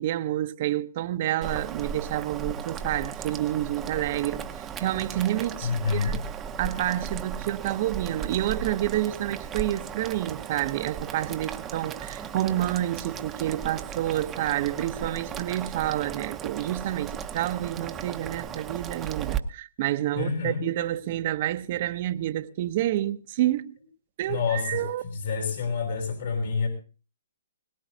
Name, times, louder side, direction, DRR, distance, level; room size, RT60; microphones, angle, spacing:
voice 1, 0.0-6.2 6.6-23.8 24.2-25.0, right 13 dB, 45° right, 0.8 m, -29 dB
Boiling, 1.4-19.4, right 7 dB, 15° right, 0.9 m, -36 dB
voice 2, 5.6-6.2 20.2-20.7 24.3-24.8 25.1-26.7, left 5 dB, 65° left, 7.4 m, -28 dB
21.5 x 19.0 x 2.8 m
hypercardioid pair, 145°, 0 cm